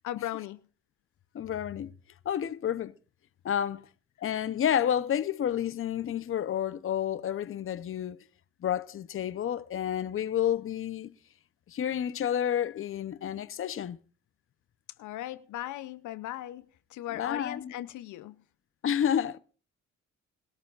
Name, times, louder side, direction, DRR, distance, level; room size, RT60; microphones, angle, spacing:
voice 1, 0.0-0.6 15.0-18.4, left 14 dB, 80° left, 0.6 m, -38 dB
voice 2, 1.3-1.9 2.2-2.9 3.4-3.9 4.2-8.2 8.6-11.1 11.7-14.0 17.2-17.7 18.8-19.4, left 9 dB, 45° left, 0.7 m, -30 dB
21.0 x 13.0 x 2.4 m
cardioid pair, 90°, 30 cm